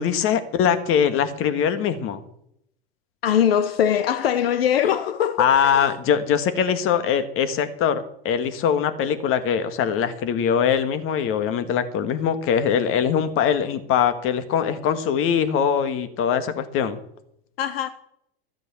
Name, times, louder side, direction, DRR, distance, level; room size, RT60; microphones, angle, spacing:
voice 1, 0.0-2.2 5.4-17.0, left 8 dB, 45° left, 1.8 m, -22 dB
voice 2, 3.2-6.0 17.6-17.9, left 9 dB, 80° left, 0.9 m, -22 dB
13.5 x 8.2 x 7.1 m
hypercardioid pair, 90°, 29 cm